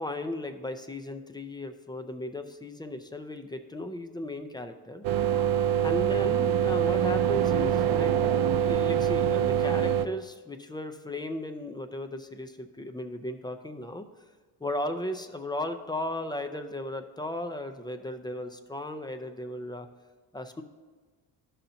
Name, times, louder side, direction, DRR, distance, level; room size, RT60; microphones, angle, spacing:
voice 1, 0.0-5.1 5.8-8.2 8.6-14.1 14.6-19.9 20.3-20.6, left 1 dB, 10° left, 7 dB, 0.4 m, -36 dB
sound 1, 5.0-10.1, right 10 dB, 60° right, 0.6 m, -24 dB
13.0 x 5.7 x 2.7 m, 1.4 s
cardioid pair, 90°, 48 cm